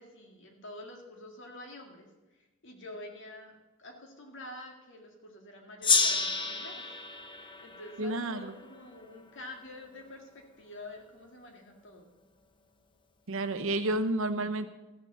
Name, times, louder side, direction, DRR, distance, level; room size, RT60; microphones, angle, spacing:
voice 1, 0.0-2.1 2.6-6.9 7.6-12.1, left 1 dB, 60° left, 3 dB, 2.1 m, -47 dB
Gong, 5.8-9.0, left 4 dB, 25° left, 0.8 m, -30 dB
voice 2, 8.0-8.5 13.3-14.7, right 2 dB, 65° right, 10 dB, 0.9 m, -30 dB
14.5 x 6.8 x 6.9 m, 1.1 s
head